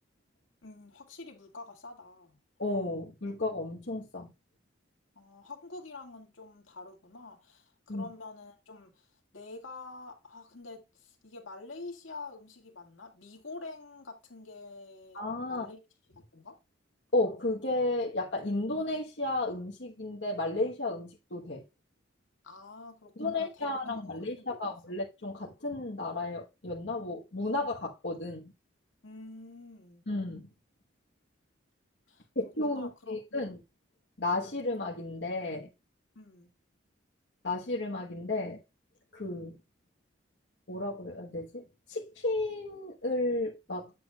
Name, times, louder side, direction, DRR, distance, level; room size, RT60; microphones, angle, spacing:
voice 1, 0.6-2.4 5.2-9.1 9.3-15.2 15.5-15.8 16.2-16.6 22.4-23.7 24.0-24.7 25.6-25.7 29.0-30.0 32.1-33.5 36.2-36.5, left 3 dB, 90° left, 2.0 m, -47 dB
voice 2, 2.6-4.3 7.9-8.0 15.1-15.7 17.1-21.6 23.2-28.5 30.1-30.5 32.3-33.6 34.2-35.7 37.4-38.6 39.1-39.6 40.7-43.9, left 2 dB, 65° left, 1.3 m, -33 dB
8.1 x 7.5 x 2.4 m
head